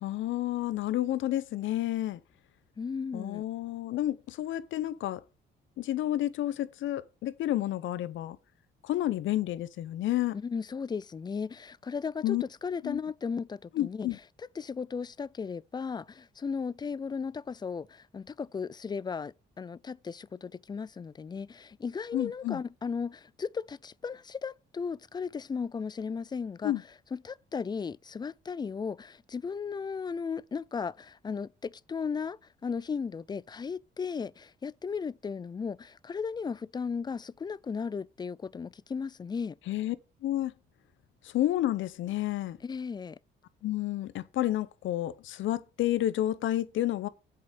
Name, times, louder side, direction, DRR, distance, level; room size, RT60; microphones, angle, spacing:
voice 1, 0.0-2.2 3.1-5.2 5.8-8.4 8.8-10.4 12.2-12.4 12.8-13.0 13.7-14.2 22.1-22.6 26.6-26.8 39.7-40.0 40.2-40.5 41.2-42.6 43.6-47.1, left 13 dB, 75° left, 0.7 m, -30 dB
voice 2, 2.8-3.4 10.3-14.1 14.6-26.7 27.1-39.6 42.6-43.2, left 5 dB, 20° left, 0.3 m, -36 dB
7.9 x 5.2 x 6.3 m
cardioid pair, 90°, 20 cm